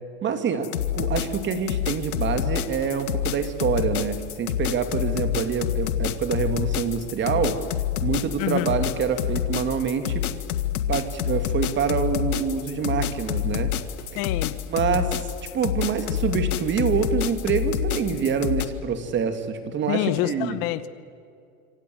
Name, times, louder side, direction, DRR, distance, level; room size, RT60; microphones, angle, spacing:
voice 1, 0.2-7.6 8.0-10.2 10.9-13.7 14.7-20.6, right 6 dB, 25° right, 9 dB, 2.4 m, -26 dB
sound 1, 0.6-18.7, left 11 dB, 90° left, 1.8 m, -27 dB
voice 2, 8.4-8.8 14.1-14.6 19.9-20.9, left 16 dB, 45° left, 14 dB, 1.1 m, -26 dB
26.5 x 26.0 x 7.9 m, 2.4 s
supercardioid pair, 140°, 42 cm